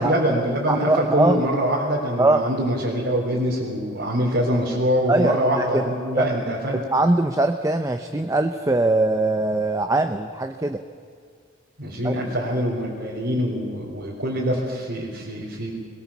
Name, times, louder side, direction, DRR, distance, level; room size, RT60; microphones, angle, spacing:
voice 1, 0.0-6.8 11.8-15.7, equal, 60° right, -4 dB, 3.6 m, -24 dB
voice 2, 0.7-1.4 2.2-2.4 5.1-5.8 6.2-6.3 6.9-10.8 12.0-12.1, right 2 dB, 15° right, 7 dB, 0.7 m, -21 dB
21.0 x 20.5 x 7.2 m, 2.1 s
head